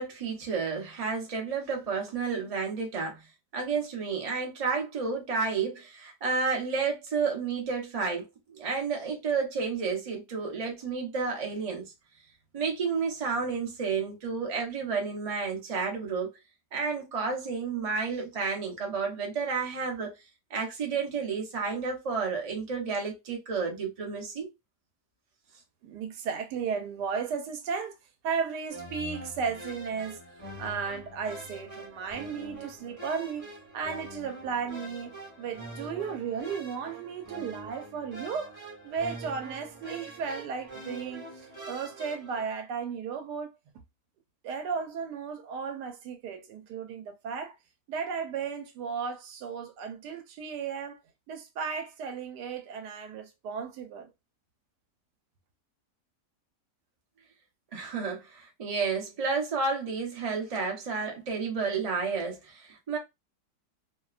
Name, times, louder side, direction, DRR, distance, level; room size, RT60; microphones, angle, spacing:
voice 1, 0.0-3.2 3.5-11.8 12.5-16.3 16.7-20.1 20.5-24.5 57.7-63.0, right 5 dB, 45° right, 0.4 m, -31 dB
voice 2, 25.8-28.0 28.2-33.5 33.7-38.5 38.8-43.6 44.4-47.6 47.9-51.0 51.3-54.1, right 6 dB, 80° right, 1.2 m, -35 dB
sound 1, 28.7-42.4, right 1 dB, 15° right, 0.8 m, -44 dB
2.7 x 2.1 x 2.3 m
omnidirectional pair, 1.8 m